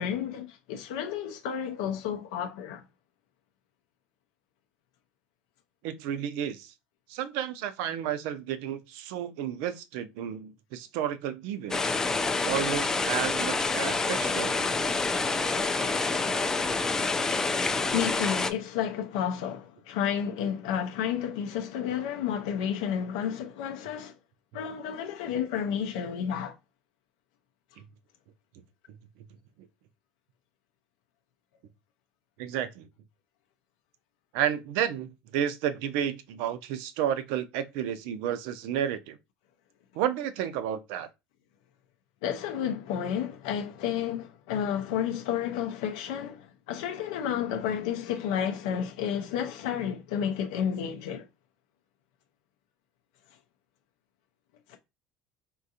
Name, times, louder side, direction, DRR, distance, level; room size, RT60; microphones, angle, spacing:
voice 1, 0.0-2.8 16.2-16.3 17.9-24.1 24.5-26.6 42.2-51.3 54.7-54.8, left 9 dB, 90° left, 0.4 m, -31 dB
voice 2, 5.8-6.7 7.1-12.0 12.4-15.0 32.4-32.9 34.3-39.2 39.9-41.1, right 10 dB, 80° right, 0.4 m, -32 dB
sound 1, 11.7-18.5, left 3 dB, 15° left, 0.3 m, -27 dB
3.7 x 2.4 x 2.7 m
supercardioid pair, 120°, 4 cm